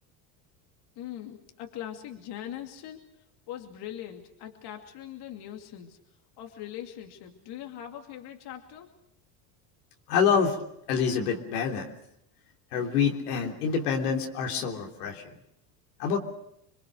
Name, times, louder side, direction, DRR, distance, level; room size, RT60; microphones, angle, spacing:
voice 1, 1.0-3.0 3.5-6.0 6.4-8.9, left 11 dB, 60° left, 3 dB, 2.7 m, -41 dB
voice 2, 10.1-10.6 10.9-11.9 12.7-15.4 16.0-16.2, left 6 dB, 90° left, 1 dB, 3.4 m, -26 dB
27.0 x 22.5 x 6.5 m, 0.79 s
supercardioid pair, 90°, 44 cm